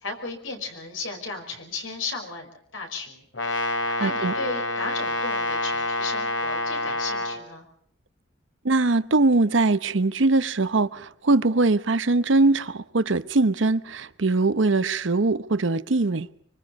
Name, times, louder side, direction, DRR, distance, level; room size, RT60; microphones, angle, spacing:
voice 1, 0.0-3.3 4.0-7.7, left 3 dB, 90° left, 5.4 m, -35 dB
Brass instrument, 3.3-7.4, left 2 dB, 70° left, 3.4 m, -27 dB
voice 2, 4.0-4.3 8.6-16.3, right 3 dB, 70° right, 0.9 m, -22 dB
25.0 x 24.5 x 5.3 m
head